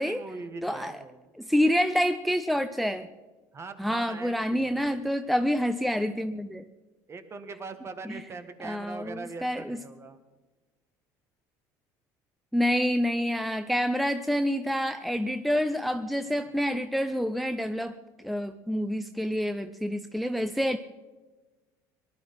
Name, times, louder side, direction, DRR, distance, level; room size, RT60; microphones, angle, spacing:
voice 1, 0.0-1.2 3.5-4.9 7.1-10.2, right 4 dB, 30° right, 9 dB, 1.7 m, -41 dB
voice 2, 0.6-0.9 1.4-3.1 3.8-6.6 8.6-9.8 12.5-18.0 18.2-20.8, equal, ahead, 9 dB, 0.6 m, -27 dB
19.0 x 11.5 x 5.8 m, 1.2 s
supercardioid pair, 95°, 9 cm